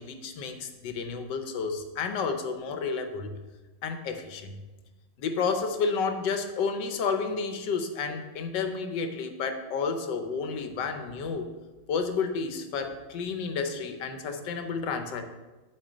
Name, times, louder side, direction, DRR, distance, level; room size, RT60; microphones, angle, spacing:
voice 1, 0.0-3.3 3.8-4.6 5.2-11.5 11.9-15.3, left 5 dB, 80° left, 6 dB, 1.4 m, -31 dB
7.7 x 4.5 x 6.2 m, 1.2 s
omnidirectional pair, 1.9 m